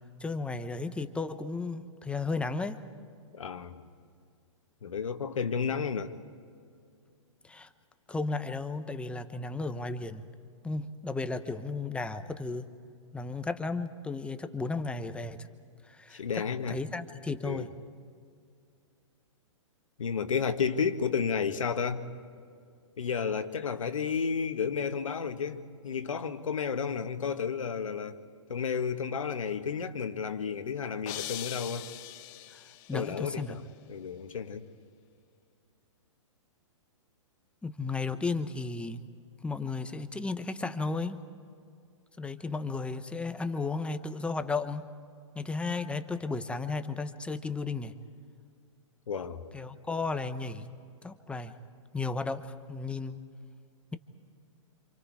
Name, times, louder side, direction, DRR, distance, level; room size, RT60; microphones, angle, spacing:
voice 1, 0.2-2.8 7.4-7.7 8.1-10.2 10.6-12.7 13.1-15.5 15.9-16.2 16.7-17.7 32.5-32.6 32.9-33.6 37.6-39.0 39.4-41.2 42.2-44.9 45.3-47.9 49.5-50.6 51.0-51.6 51.9-53.2, left 3 dB, 5° left, 9 dB, 0.9 m, -34 dB
voice 2, 3.3-3.8 4.8-6.2 16.1-16.8 17.4-17.7 20.0-22.0 23.0-28.2 28.5-31.9 32.9-33.6 33.9-34.6 49.1-49.4, left 6 dB, 80° left, 7 dB, 1.6 m, -32 dB
sound 1, 31.1-33.1, left 14 dB, 40° left, 1.0 m, -41 dB
28.0 x 27.5 x 4.8 m, 2.2 s
hypercardioid pair, 130°, 17 cm